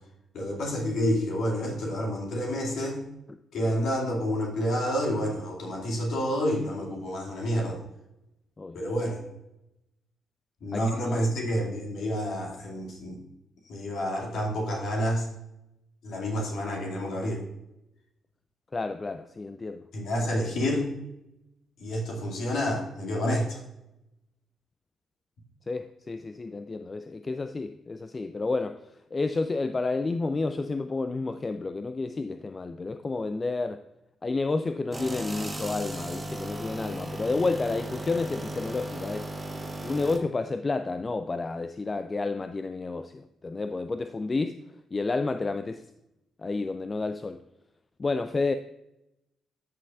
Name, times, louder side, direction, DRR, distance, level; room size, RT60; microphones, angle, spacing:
voice 1, 0.3-3.0 3.5-7.8 8.7-9.2 10.6-13.2 13.6-15.3 16.0-17.4 19.9-20.9 21.8-23.6, equal, 60° left, -1 dB, 2.4 m, -29 dB
voice 2, 18.7-19.8 25.7-28.8 29.1-33.8 34.2-39.3 39.8-44.6 44.9-45.9 46.4-47.4 48.0-48.5, left 3 dB, 30° left, 10 dB, 0.4 m, -30 dB
sound 1, 34.9-40.2, right 1 dB, 20° right, 1.2 m, -36 dB
13.5 x 6.1 x 2.4 m, 0.88 s
figure-of-eight pair, 40°, 0 cm